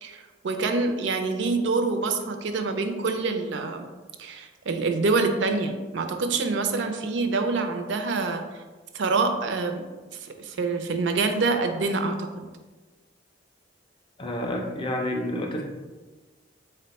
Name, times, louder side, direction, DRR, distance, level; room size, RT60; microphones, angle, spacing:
voice 1, 0.0-3.9 4.2-8.6 8.9-9.8 10.1-12.5, right 3 dB, 70° right, 6 dB, 0.4 m, -26 dB
voice 2, 14.2-15.6, left 1 dB, 25° left, 1 dB, 0.5 m, -29 dB
4.0 x 2.1 x 4.0 m, 1.3 s
head